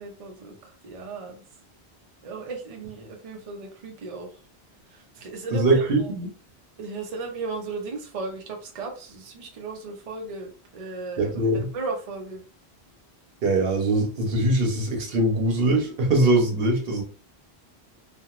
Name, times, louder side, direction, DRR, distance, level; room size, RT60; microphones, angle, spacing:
voice 1, 0.0-1.4 2.2-4.3 4.9-6.1 6.8-12.4, right 3 dB, 40° right, 2 dB, 0.6 m, -36 dB
voice 2, 5.5-6.3 11.2-11.7 13.4-17.0, right 2 dB, 65° right, 2 dB, 1.0 m, -22 dB
3.0 x 2.4 x 2.4 m, 0.37 s
omnidirectional pair, 1.1 m